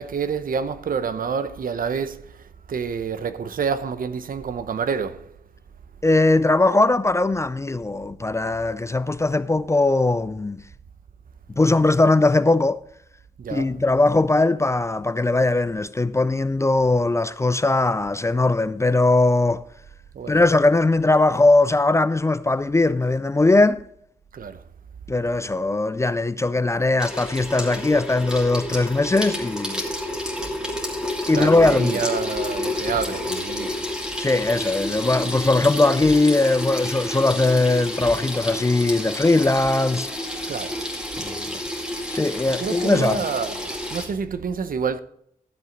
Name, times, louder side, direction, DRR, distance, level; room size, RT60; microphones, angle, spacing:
voice 1, 0.0-5.3 13.4-13.7 20.1-20.4 24.3-24.6 31.3-33.9 40.5-40.8 42.5-45.0, right 6 dB, 65° right, 0.7 m, -28 dB
voice 2, 6.0-10.6 11.5-12.8 13.5-19.6 20.3-23.8 25.1-29.8 31.3-32.0 34.2-40.1 41.2-41.6 42.1-43.3, left 2 dB, 20° left, 0.4 m, -20 dB
Water tap faucet / Sink (filling or washing), 27.0-44.1, left 1 dB, 5° right, 2.3 m, -30 dB
13.0 x 7.5 x 3.8 m
wide cardioid pair, 120°, 16 cm